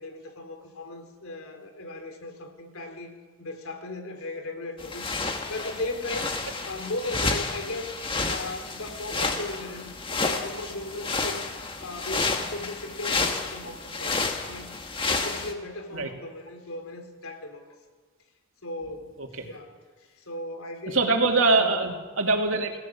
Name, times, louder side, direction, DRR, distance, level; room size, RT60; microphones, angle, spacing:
voice 1, 0.0-3.1 3.4-5.1 5.5-6.4 6.6-7.9 8.2-11.4 11.8-17.7 18.6-21.0 21.5-21.7, left 2 dB, 80° left, 5 dB, 3.5 m, -37 dB
sound 1, 4.8-15.5, left 3 dB, 25° left, 1.7 m, -30 dB
voice 2, 20.9-22.8, right 3 dB, 65° right, 3 dB, 2.8 m, -23 dB
28.0 x 17.0 x 7.4 m, 1.5 s
head